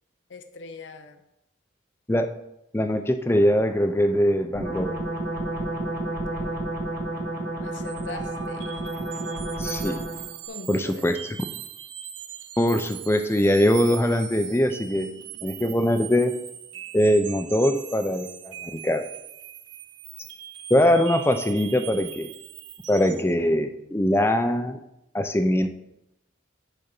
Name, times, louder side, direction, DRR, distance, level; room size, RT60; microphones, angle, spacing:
voice 1, 0.3-1.2 6.3-7.0 7.6-8.7 10.5-11.0, left 4 dB, 75° left, 8 dB, 0.7 m, -42 dB
voice 2, 2.7-4.9 9.6-10.0 10.7-11.2 12.6-15.1 15.4-16.3 16.9-19.0 20.7-22.3 22.9-24.8 25.1-25.7, equal, 15° left, 7 dB, 0.6 m, -22 dB
sound 1, 4.5-10.3, right 1 dB, 50° right, 1.5 m, -30 dB
sound 2, 7.8-23.3, right 10 dB, 75° right, 0.7 m, -40 dB
6.5 x 5.1 x 6.0 m, 0.83 s
head